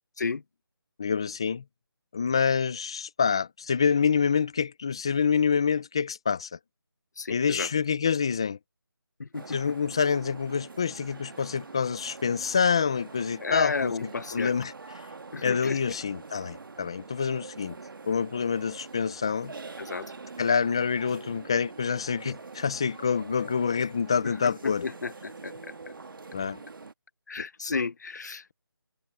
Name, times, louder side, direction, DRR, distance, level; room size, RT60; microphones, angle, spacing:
voice 1, 1.0-1.6 2.1-6.6 7.3-8.6 9.5-14.7 15.4-17.8 18.1-19.5 20.4-24.9 26.3-26.6, left 6 dB, 10° left, 0.5 m, -27 dB
voice 2, 7.2-7.7 9.2-9.6 13.4-14.5 15.3-15.8 19.8-20.1 24.2-25.5 27.3-28.5, left 4 dB, 45° left, 1.7 m, -32 dB
sound 1, 9.3-26.9, right 4 dB, 60° right, 1.6 m, -45 dB
figure-of-eight pair, 170°, 13 cm